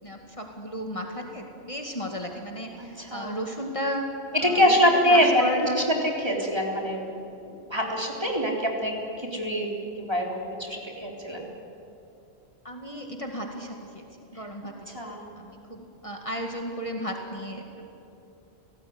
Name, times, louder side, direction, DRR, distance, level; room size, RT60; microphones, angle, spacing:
voice 1, 0.0-4.1 4.4-4.8 5.1-6.0 12.6-14.0 14.3-17.8, equal, 30° left, 2 dB, 2.2 m, -34 dB
voice 2, 3.0-3.3 4.4-5.7 6.2-9.7 10.0-11.5 14.9-15.3, equal, 25° right, -1 dB, 3.8 m, -24 dB
29.0 x 18.0 x 9.6 m, 2.9 s
omnidirectional pair, 1.1 m